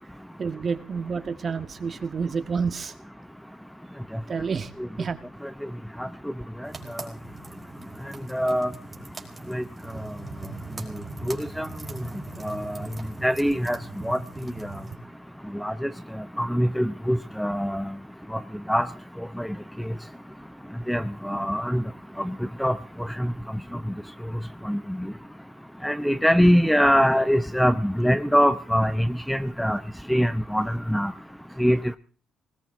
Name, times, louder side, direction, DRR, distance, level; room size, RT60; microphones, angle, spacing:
voice 1, 0.4-2.9 4.3-4.7 5.0-5.2, right 5 dB, 45° right, 11 dB, 1.6 m, -29 dB
sound 1, 6.6-15.0, right 3 dB, 20° right, 4.8 m, -40 dB
voice 2, 8.3-8.7 9.5-9.6 11.3-11.7 12.4-12.8 13.2-13.8 14.0-14.2 15.6-15.9 16.4-17.8 18.3-18.4 18.7-18.9 19.4-19.5 20.9-21.8 22.2-22.3 22.6-22.8 23.2-23.3 24.6-25.1 25.8-29.8 30.1-31.1 31.6-31.8, equal, ahead, 13 dB, 0.8 m, -23 dB
19.5 x 19.5 x 3.7 m, 0.41 s
cardioid pair, 90°, 0 cm